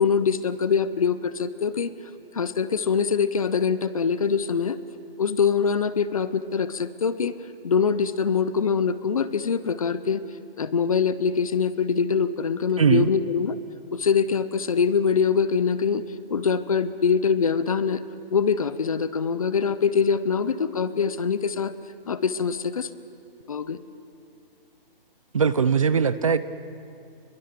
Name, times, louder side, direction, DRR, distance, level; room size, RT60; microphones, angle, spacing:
voice 1, 0.0-1.9 2.3-4.8 5.2-7.3 7.6-10.2 10.6-13.6 13.9-16.0 16.3-18.0 18.3-21.7 22.1-22.9 23.5-23.8, left 6 dB, 35° left, 14 dB, 0.8 m, -23 dB
voice 2, 12.8-13.1 25.3-26.4, right 6 dB, 35° right, 15 dB, 0.6 m, -20 dB
29.0 x 22.0 x 6.8 m, 2.4 s
hypercardioid pair, 175°, 29 cm